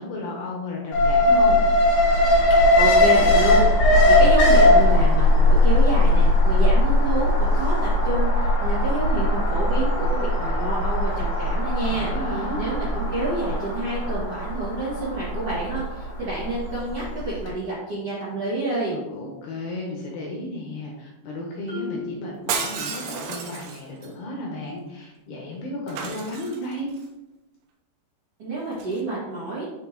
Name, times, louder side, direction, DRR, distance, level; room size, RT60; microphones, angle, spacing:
voice 1, 0.0-1.6 11.9-12.6 18.9-26.9, left 1 dB, 75° left, -1 dB, 2.7 m, -34 dB
Alarm, 0.9-17.0 17.3-17.4, left 1 dB, 60° left, 2.1 m, -19 dB
voice 2, 2.7-7.7 8.0-19.0 28.4-29.7, right 2 dB, 50° right, -11 dB, 1.7 m, -28 dB
Marimba xylophone, 21.7-23.4, left 6 dB, 30° right, 1.4 m, -38 dB
Shatter, 22.5-24.1 25.9-27.0 28.7-29.0, right 5 dB, 80° right, 2.5 m, -31 dB
6.7 x 5.8 x 2.9 m, 0.99 s
omnidirectional pair, 5.3 m